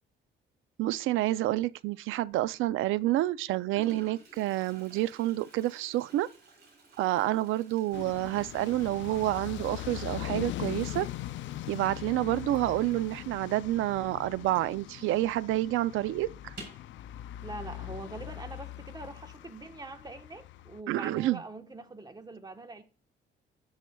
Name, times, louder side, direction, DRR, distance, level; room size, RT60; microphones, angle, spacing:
voice 1, 0.8-6.3 7.0-11.1 11.7-16.5 20.9-21.4, right 15 dB, 85° right, 0.4 m, -29 dB
Toilet flush, 2.3-2.7 3.4-3.5 3.7-15.0 15.3-15.4 15.7-15.8 16.4-16.9, right 3 dB, 55° right, 4.1 m, -54 dB
sound 1, 7.9-20.8, left 14 dB, 70° left, 0.4 m, -41 dB
voice 2, 17.4-22.8, right 2 dB, 20° right, 1.2 m, -43 dB
9.9 x 9.3 x 2.3 m
cardioid pair, 90°, 20 cm